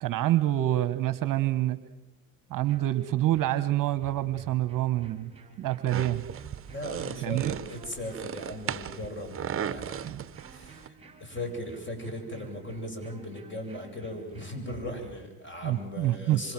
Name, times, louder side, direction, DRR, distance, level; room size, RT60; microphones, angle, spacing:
voice 1, 0.0-1.8 2.5-5.3 5.6-6.2 7.2-7.5 10.0-10.2 15.6-16.4, right 14 dB, 45° right, 14 dB, 1.3 m, -27 dB
sound 1, 2.6-15.3, right 5 dB, 15° right, 5.5 m, -51 dB
sound 2, 5.9-10.9, right 9 dB, 30° right, 1.0 m, -37 dB
voice 2, 6.7-10.2 10.5-10.9 11.2-16.5, left 1 dB, 25° left, 5 dB, 8.0 m, -38 dB
26.5 x 25.0 x 7.6 m, 0.98 s
hypercardioid pair, 85°, 44 cm